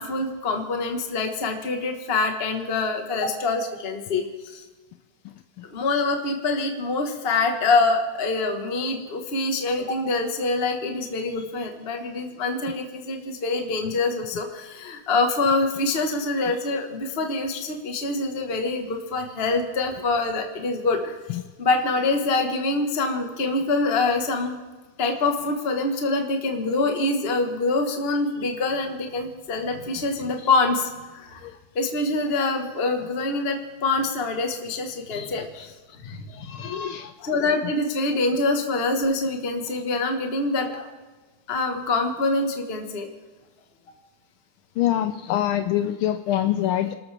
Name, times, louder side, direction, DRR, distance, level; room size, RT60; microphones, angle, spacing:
voice 1, 0.0-4.6 5.7-24.6 25.0-31.4 31.7-35.7 36.2-36.5 37.2-40.9 41.5-43.1, left 3 dB, 30° left, 4 dB, 1.4 m, -25 dB
voice 2, 35.1-35.7 36.0-37.3 44.8-47.0, left 12 dB, 80° left, 9 dB, 1.4 m, -26 dB
27.0 x 13.0 x 3.4 m, 1.3 s
omnidirectional pair, 2.4 m